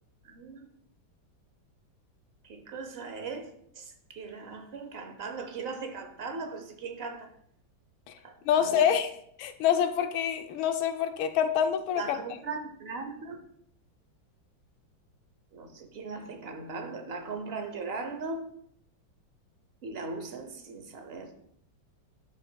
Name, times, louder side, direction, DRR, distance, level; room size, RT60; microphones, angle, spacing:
voice 1, 0.2-0.7 2.4-3.5 3.7-7.3 8.2-8.8 12.0-13.4 15.5-18.4 19.8-21.3, right 4 dB, 65° right, 0.6 m, -38 dB
voice 2, 8.4-9.1 9.4-12.0, left 8 dB, 85° left, 1.5 m, -26 dB
11.5 x 4.9 x 2.3 m
omnidirectional pair, 2.1 m